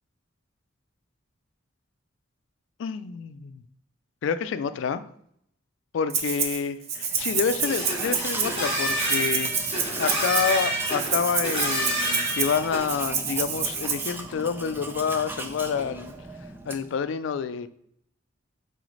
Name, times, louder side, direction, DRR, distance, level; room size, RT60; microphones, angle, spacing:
voice 1, 2.8-3.6 4.2-5.0 5.9-16.1 16.7-17.7, left 6 dB, 70° left, 13 dB, 0.3 m, -28 dB
Rattle (instrument), 6.1-6.6 6.9-14.1, right 6 dB, 50° right, 0.6 m, -28 dB
Domestic sounds home sounds, 6.9-17.0, right 2 dB, 10° right, 0.3 m, -39 dB
sound 1, 7.6-12.8, right 1 dB, 30° right, 1.4 m, -29 dB
4.0 x 3.1 x 3.8 m, 0.68 s
head